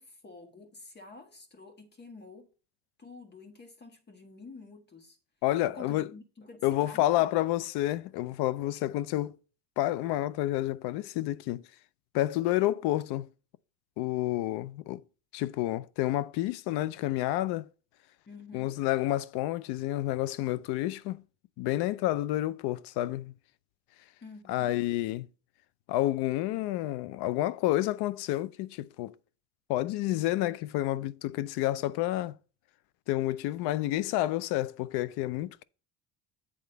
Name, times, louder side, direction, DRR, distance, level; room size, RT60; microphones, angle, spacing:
voice 1, 0.0-2.5 3.0-5.2 5.7-7.4 18.3-18.8 24.2-24.8, left 3 dB, 25° left, 1.5 m, -49 dB
voice 2, 5.4-6.1 6.6-9.4 9.8-11.6 12.1-13.3 14.0-15.0 15.3-17.7 18.5-21.2 21.6-23.3 24.5-25.3 25.9-29.1 29.7-32.4 33.1-35.6, left 15 dB, 80° left, 0.6 m, -29 dB
8.6 x 3.7 x 6.7 m
cardioid pair, 140°, 39 cm